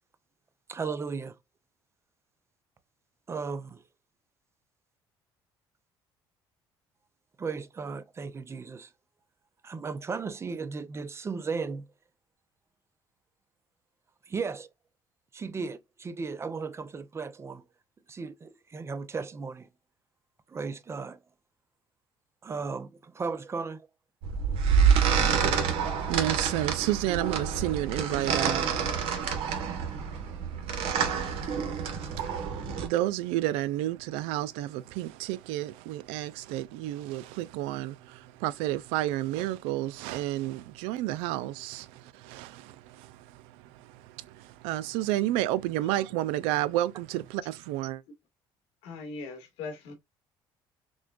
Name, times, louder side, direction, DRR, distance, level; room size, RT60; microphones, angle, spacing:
voice 1, 0.7-1.3 3.3-3.8 7.4-8.9 9.6-11.9 14.3-14.7 15.3-17.6 18.1-19.7 20.5-21.2 22.4-23.9, right 4 dB, 25° right, 0.5 m, -35 dB
sound 1, 24.2-32.9, right 7 dB, 70° right, 1.1 m, -27 dB
voice 2, 26.0-48.0, right 14 dB, 90° right, 0.4 m, -32 dB
voice 3, 48.8-49.9, left 4 dB, 85° left, 1.7 m, -39 dB
6.1 x 2.2 x 2.3 m
supercardioid pair, 95°, 10 cm